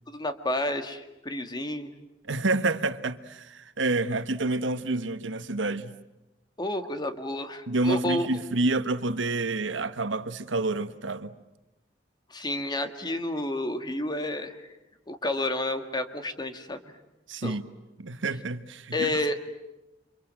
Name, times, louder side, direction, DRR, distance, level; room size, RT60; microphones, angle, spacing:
voice 1, 0.1-1.9 6.6-8.3 12.3-14.6 15.1-16.8 17.4-17.6 18.9-19.4, left 1 dB, 25° left, 1.9 m, -30 dB
voice 2, 2.3-5.9 7.7-11.3 17.3-17.6 18.0-19.2, right 2 dB, 85° right, 1.3 m, -28 dB
29.5 x 26.5 x 7.7 m
head